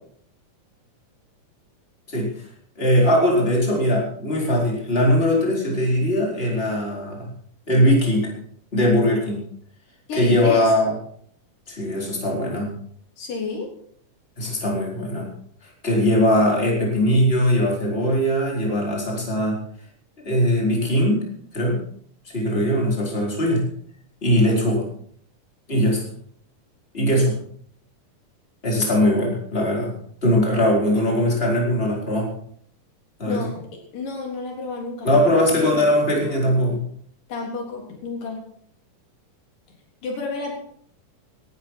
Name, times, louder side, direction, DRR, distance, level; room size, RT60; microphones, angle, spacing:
voice 1, 2.8-7.3 7.7-8.3 8.7-9.4 10.1-10.9 11.7-12.7 14.4-15.3 15.6-19.6 20.2-21.2 21.5-21.8 22.2-23.6 24.2-24.9 25.7-26.0 26.9-27.4 28.6-29.9 30.2-32.3 33.2-33.4 35.0-36.8, equal, 15° left, -2 dB, 4.5 m, -20 dB
voice 2, 10.1-10.7 13.2-13.7 33.3-33.6 33.9-35.8 37.3-38.4 40.0-40.5, left 4 dB, 85° left, 0 dB, 5.2 m, -30 dB
17.5 x 12.5 x 4.6 m, 0.64 s
omnidirectional pair, 3.7 m